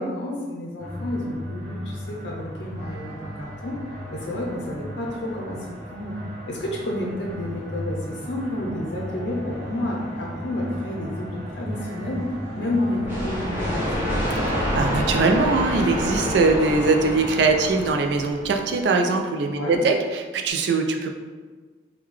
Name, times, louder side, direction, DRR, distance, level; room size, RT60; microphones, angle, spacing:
voice 1, 0.0-3.8 4.1-6.2 6.5-12.2 12.5-14.1 19.5-19.8, left 1 dB, 75° left, -2 dB, 0.5 m, -30 dB
sound 1, 0.8-14.3, equal, 40° right, 1.0 m, -36 dB
sound 2, 8.7-16.0, equal, 25° left, 0.7 m, -40 dB
sound 3, 13.0-18.7, equal, 15° right, 0.5 m, -27 dB
voice 2, 14.7-21.1, right 3 dB, 65° right, 4 dB, 0.3 m, -21 dB
3.6 x 2.2 x 3.1 m, 1.4 s
head